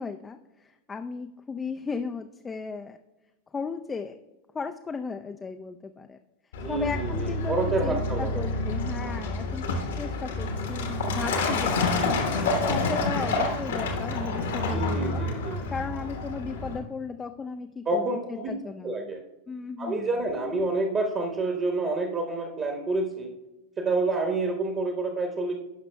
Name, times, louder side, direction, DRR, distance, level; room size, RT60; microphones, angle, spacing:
voice 1, 0.0-3.0 3.5-4.2 4.5-6.2 6.7-7.6 7.8-11.7 12.0-12.2 12.7-15.3 15.7-19.1 19.5-20.1, left 5 dB, 15° left, 6 dB, 0.4 m, -36 dB
Truck, 6.5-16.8, left 2 dB, 60° left, 1.2 m, -28 dB
voice 2, 6.6-8.5 14.6-15.6 17.9-18.5 18.8-19.2 19.8-23.3 23.8-25.5, right 2 dB, 30° right, 2 dB, 1.0 m, -28 dB
15.5 x 5.8 x 2.2 m, 1.1 s
figure-of-eight pair, 90°, 0 cm